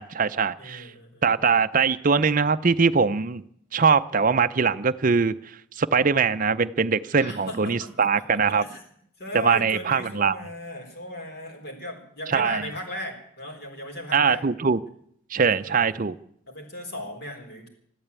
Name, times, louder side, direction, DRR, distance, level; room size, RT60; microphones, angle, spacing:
voice 1, 0.0-0.9 1.2-3.4 3.7-5.4 5.7-8.6 9.3-10.3 12.3-12.6 14.1-14.8 15.3-16.2, right 5 dB, 40° right, 11 dB, 0.5 m, -22 dB
voice 2, 0.6-1.3 7.2-8.8 9.2-14.5 15.6-15.9 16.5-17.7, left 1 dB, 50° left, 2 dB, 4.0 m, -37 dB
14.5 x 12.0 x 8.2 m, 0.68 s
head